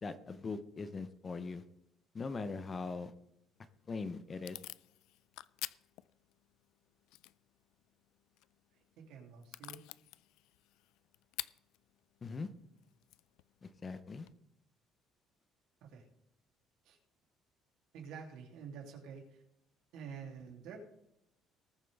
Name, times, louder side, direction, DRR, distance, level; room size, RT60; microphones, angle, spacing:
voice 1, 0.0-1.6 2.1-3.1 3.9-4.6 12.2-12.5 13.6-14.3, left 4 dB, 20° left, 12 dB, 0.7 m, -41 dB
Packing tape duct tape / Tearing, 3.5-14.3, left 18 dB, 90° left, 0.3 m, -51 dB
voice 2, 8.7-9.8 15.8-16.1 16.8-17.0 17.9-19.4 19.9-20.8, right 6 dB, 75° right, 1 dB, 2.9 m, -49 dB
19.5 x 7.3 x 3.5 m, 0.83 s
cardioid pair, 175°, 0 cm